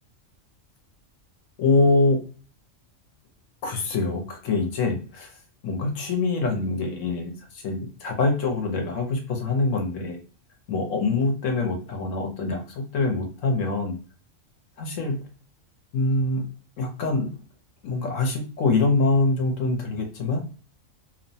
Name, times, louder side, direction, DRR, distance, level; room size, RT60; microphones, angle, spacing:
voice 1, 1.6-2.2 3.6-5.3 5.6-10.2 10.7-14.0 14.8-15.2 15.9-16.5 16.8-17.4 17.8-20.4, left 3 dB, 80° left, 3 dB, 1.1 m, -24 dB
2.8 x 2.1 x 2.7 m, 0.36 s
omnidirectional pair, 1.3 m